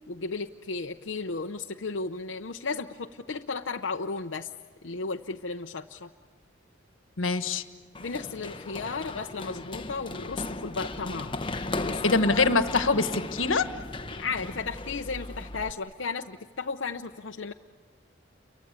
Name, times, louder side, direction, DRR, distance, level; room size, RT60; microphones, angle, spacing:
voice 1, 0.1-4.5 4.8-6.1 8.0-11.4 11.7-12.0 14.2-17.5, left 4 dB, 65° left, 3 dB, 0.8 m, -34 dB
voice 2, 7.2-7.6 12.0-13.7, left 3 dB, 90° left, 9 dB, 1.4 m, -24 dB
Run, 7.9-15.7, left 2 dB, 25° left, 1.0 m, -36 dB
29.5 x 23.5 x 8.2 m, 1.5 s
head